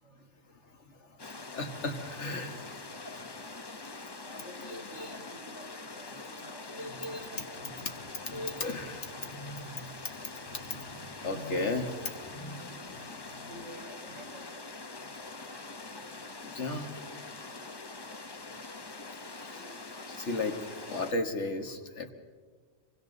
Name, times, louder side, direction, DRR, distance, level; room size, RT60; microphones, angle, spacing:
sound 1, 1.2-21.1, left 3 dB, 25° left, 0.7 m, -44 dB
voice 1, 1.5-2.6 4.7-5.1 6.7-7.3 8.3-9.9 10.5-13.5 16.4-16.9 19.3-19.8 20.1-20.6 20.9-22.1, left 2 dB, 65° left, 5 dB, 1.9 m, -36 dB
voice 2, 3.0-3.7 3.9-7.9 13.4-14.6 17.5-18.0, equal, 90° right, 1 dB, 4.9 m, -51 dB
27.5 x 24.0 x 4.0 m, 1.5 s
omnidirectional pair, 1.3 m